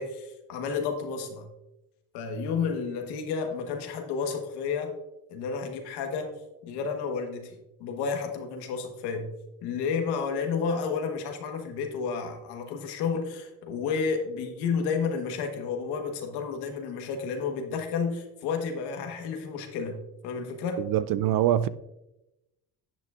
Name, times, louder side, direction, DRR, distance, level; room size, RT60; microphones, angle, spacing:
voice 1, 0.0-1.5 2.1-4.9 5.3-6.3 6.6-9.3 9.6-20.8, left 5 dB, 85° left, 1.3 m, -31 dB
voice 2, 20.8-21.7, right 11 dB, 60° right, 0.5 m, -24 dB
11.0 x 7.6 x 2.4 m
supercardioid pair, 70°, 39 cm